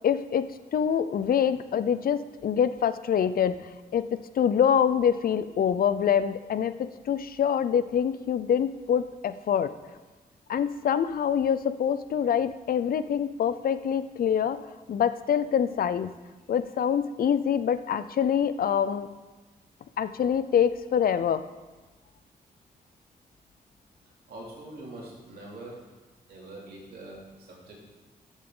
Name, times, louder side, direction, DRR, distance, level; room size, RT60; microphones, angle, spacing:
voice 1, 0.0-3.6 3.9-9.7 10.5-16.1 16.5-19.1 20.0-21.4, left 8 dB, 65° left, 13 dB, 0.5 m, -25 dB
voice 2, 24.3-25.8 26.3-27.8, right 2 dB, 85° right, -3 dB, 2.9 m, -43 dB
14.0 x 7.3 x 3.8 m, 1.2 s
cardioid pair, 105°, 16 cm